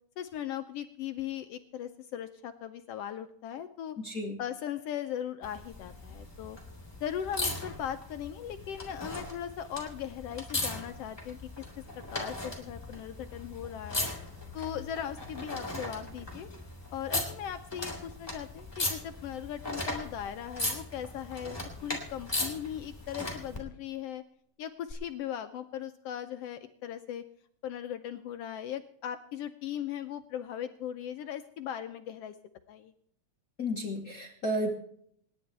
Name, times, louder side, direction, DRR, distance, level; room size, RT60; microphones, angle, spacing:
voice 1, 0.2-4.0 4.4-6.6 7.0-11.5 12.1-14.1 14.5-16.5 16.9-24.2 24.6-27.2 27.6-32.3 32.7-32.9, left 10 dB, 80° left, 9 dB, 1.4 m, -38 dB
voice 2, 4.0-4.4 33.6-34.7, equal, 60° left, 2 dB, 0.9 m, -32 dB
sound 1, 5.4-23.6 24.9-25.0, left 2 dB, 10° left, 3.0 m, -38 dB
27.5 x 10.5 x 3.4 m, 0.66 s
omnidirectional pair, 3.5 m